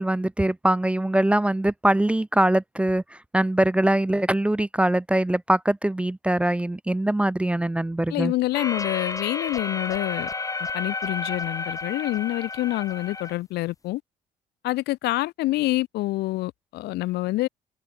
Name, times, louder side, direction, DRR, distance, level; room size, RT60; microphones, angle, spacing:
voice 1, 0.0-3.0 3.3-8.3, right 1 dB, 5° right, 0.4 m, -22 dB
voice 2, 8.1-10.3 10.7-14.0 14.6-17.5, left 18 dB, 80° left, 0.8 m, -27 dB
sound 1, 8.5-13.3, left 3 dB, 20° left, 2.8 m, -31 dB
cardioid pair, 110°, 17 cm